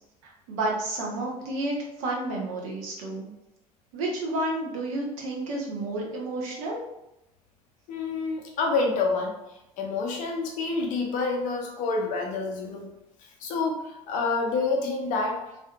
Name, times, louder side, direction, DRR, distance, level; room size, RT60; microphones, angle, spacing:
voice 1, 0.2-3.3 3.9-6.8, right 2 dB, 60° right, -2 dB, 0.8 m, -31 dB
voice 2, 7.9-9.3 9.8-12.9 13.4-15.4, left 3 dB, 45° left, 1 dB, 0.6 m, -28 dB
2.6 x 2.5 x 2.2 m, 0.87 s
figure-of-eight pair, 65°, 18 cm